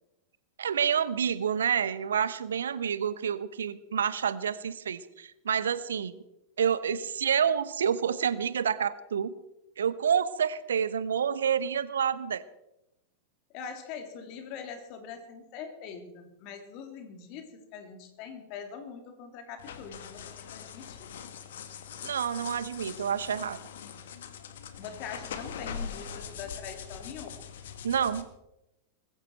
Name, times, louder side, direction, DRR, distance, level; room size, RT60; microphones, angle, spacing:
voice 1, 0.6-6.1 6.6-9.3 9.8-12.4 22.0-23.6 27.8-28.2, right 8 dB, 65° right, 16 dB, 0.9 m, -28 dB
voice 2, 13.5-21.1 24.8-27.4, left 6 dB, 45° left, 6 dB, 3.2 m, -43 dB
sound 1, 19.6-28.2, left 7 dB, 60° left, 1.7 m, -42 dB
20.0 x 15.5 x 4.5 m, 0.89 s
figure-of-eight pair, 90°, 0 cm